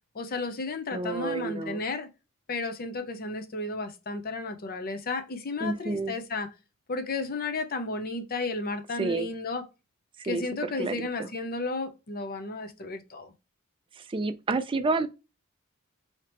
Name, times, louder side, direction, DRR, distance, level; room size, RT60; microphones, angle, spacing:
voice 1, 0.1-2.1 2.5-6.5 6.9-9.6 10.2-13.3, left 3 dB, 45° left, 0.7 m, -33 dB
voice 2, 0.9-1.8 5.6-6.1 9.0-9.3 10.3-10.4 10.8-11.3 14.1-15.1, right 3 dB, 25° right, 0.4 m, -29 dB
4.5 x 2.8 x 3.3 m
head